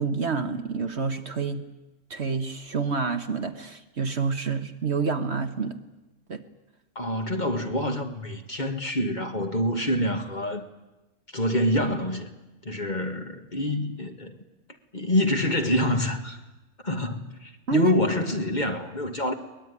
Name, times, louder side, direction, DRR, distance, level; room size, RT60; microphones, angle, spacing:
voice 1, 0.0-1.6 2.1-5.8 6.3-6.4 17.7-17.9, right 5 dB, 50° right, 1.3 m, -28 dB
voice 2, 7.0-10.6 11.3-12.3 12.6-14.4 14.9-16.4 16.8-19.3, left 1 dB, 30° left, 1.9 m, -26 dB
23.0 x 20.0 x 9.6 m
omnidirectional pair, 1.5 m